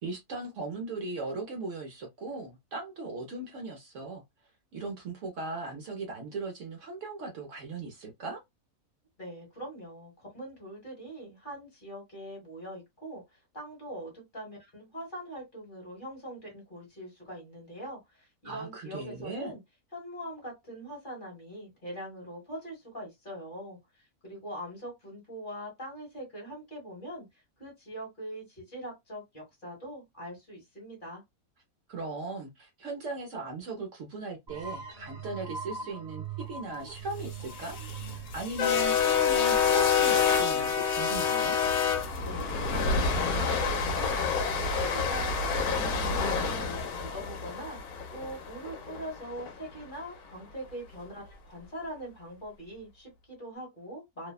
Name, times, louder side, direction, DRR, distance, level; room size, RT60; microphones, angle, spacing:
voice 1, 0.0-4.2 4.7-8.4 18.4-19.5 31.9-37.8 38.1-41.6, right 3 dB, 65° right, 0.9 m, -38 dB
voice 2, 9.2-19.6 19.9-27.3 27.6-31.2 42.2-44.2 44.5-54.3, right 1 dB, 35° left, 1.3 m, -42 dB
sound 1, 34.5-39.9, right 6 dB, 30° right, 0.9 m, -42 dB
sound 2, 37.3-49.5, left 6 dB, 70° left, 1.0 m, -28 dB
2.7 x 2.1 x 2.3 m
omnidirectional pair, 1.6 m